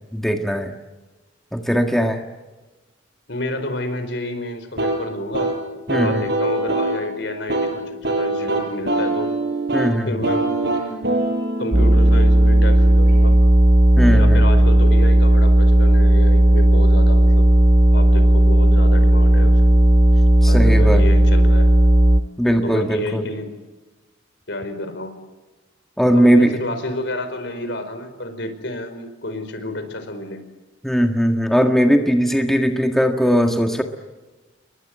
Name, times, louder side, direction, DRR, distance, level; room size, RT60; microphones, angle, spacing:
voice 1, 0.1-0.7 1.5-2.2 5.9-6.2 9.7-10.2 14.0-14.5 20.4-21.0 22.4-23.3 26.0-26.6 30.8-33.8, equal, ahead, 4 dB, 1.7 m, -18 dB
voice 2, 3.3-5.6 5.9-9.3 10.1-10.5 11.6-13.4 14.1-17.5 17.9-19.6 20.4-21.7 22.6-23.5 24.5-25.1 26.1-30.4, left 1 dB, 60° left, 9 dB, 5.0 m, -30 dB
sound 1, 4.8-13.4, right 2 dB, 60° right, 6.9 m, -24 dB
sound 2, 11.7-22.2, right 1 dB, 35° right, 1.2 m, -13 dB
29.5 x 22.5 x 8.0 m, 1.2 s
head